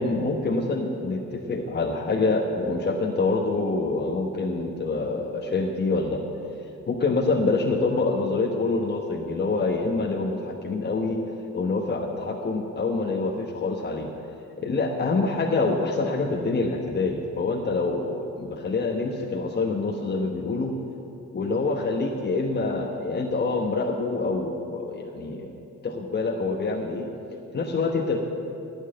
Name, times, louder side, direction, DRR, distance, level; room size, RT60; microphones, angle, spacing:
voice 1, 0.0-6.2 6.9-11.2 11.5-14.1 14.6-20.7 21.3-27.1 27.5-28.2, left 3 dB, 35° left, 2 dB, 1.1 m, -26 dB
11.5 x 6.4 x 8.9 m, 2.7 s
cardioid pair, 90°, 30 cm